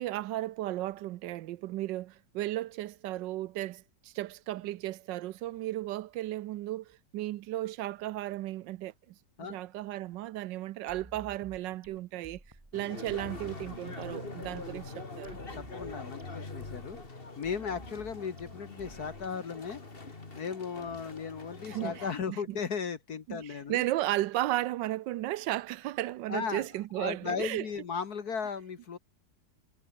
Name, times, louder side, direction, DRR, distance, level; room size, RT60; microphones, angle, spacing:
voice 1, 0.0-8.9 9.4-12.4 12.7-15.4 21.7-22.4 23.3-27.7, right 15 dB, 85° right, 1.3 m, -35 dB
sound 1, 10.9-19.5, right 1 dB, 10° right, 1.9 m, -53 dB
sound 2, 12.7-22.1, left 3 dB, 30° left, 2.6 m, -44 dB
voice 2, 15.5-17.0 17.4-19.8 20.4-23.8 26.3-26.7 27.0-29.0, left 6 dB, 60° left, 1.9 m, -36 dB
omnidirectional pair, 1.9 m